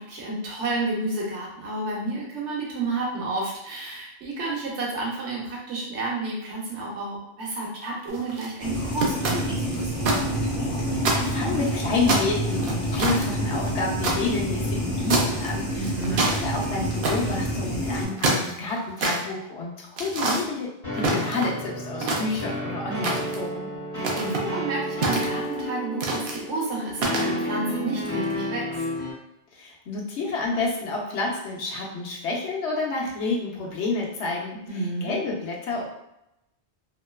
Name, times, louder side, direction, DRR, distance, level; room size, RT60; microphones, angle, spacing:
voice 1, 0.0-10.1 15.7-16.3 24.0-28.8 34.7-35.1, right 2 dB, 80° right, -3 dB, 1.1 m, -31 dB
sound 1, 8.1-8.5 9.0-10.2 10.5-10.6 11.0-11.7 12.1-14.2 15.1-15.5 15.8-16.4 17.0-17.3 18.0-19.2 20.0-20.4 21.0-21.6 22.0-22.6 23.0-23.5 24.0-24.4 25.0-25.6 26.0-26.4 27.0-27.3, right 2 dB, 60° right, 0.6 m, -26 dB
sound 2, 8.6-18.0, equal, 30° left, 1.0 m, -28 dB
voice 2, 10.9-20.7 20.9-23.7 29.5-35.8, left 3 dB, 75° left, -2 dB, 0.9 m, -29 dB
sound 3, 20.8-29.1, equal, 55° left, 1.3 m, -31 dB
2.8 x 2.2 x 2.2 m, 0.84 s
omnidirectional pair, 1.2 m